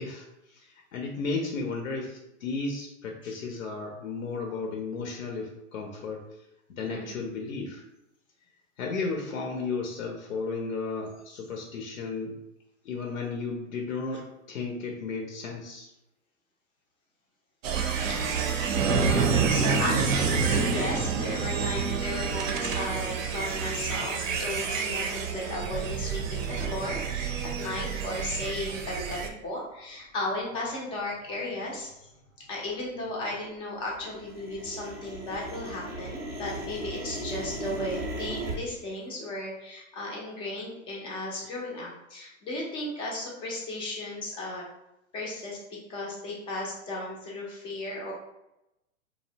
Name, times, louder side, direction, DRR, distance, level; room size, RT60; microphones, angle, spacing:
voice 1, 0.0-6.3 6.7-7.8 8.8-12.4 12.8-15.9, left 4 dB, 85° left, 1 dB, 0.6 m, -34 dB
sound 1, 17.6-29.3, right 5 dB, 75° right, 0.6 m, -28 dB
voice 2, 18.1-18.6 19.0-32.1 32.5-44.6 45.1-48.1, left 2 dB, 15° left, -3 dB, 0.3 m, -35 dB
sound 2, 29.4-29.5 29.9-30.0 30.3-30.8 31.1-33.4 33.7-38.5, right 1 dB, 25° right, 0.6 m, -38 dB
2.6 x 2.0 x 2.7 m, 0.89 s
hypercardioid pair, 110°, 39 cm